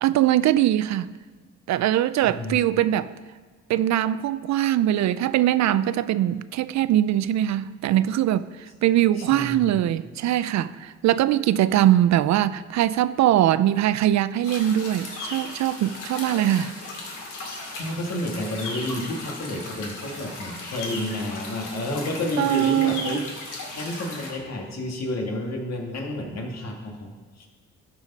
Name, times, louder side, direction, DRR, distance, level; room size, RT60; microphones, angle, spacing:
voice 1, 0.0-1.1 1.7-3.1 3.7-8.5 8.8-16.7 22.4-23.2, right 12 dB, 65° right, 0.4 m, -22 dB
voice 2, 2.2-2.6 9.2-9.7 17.8-27.5, left 1 dB, 60° left, 2.0 m, -31 dB
sound 1, 14.4-24.3, left 2 dB, 85° left, 2.4 m, -36 dB
13.0 x 4.9 x 5.5 m
cardioid pair, 90°, 30 cm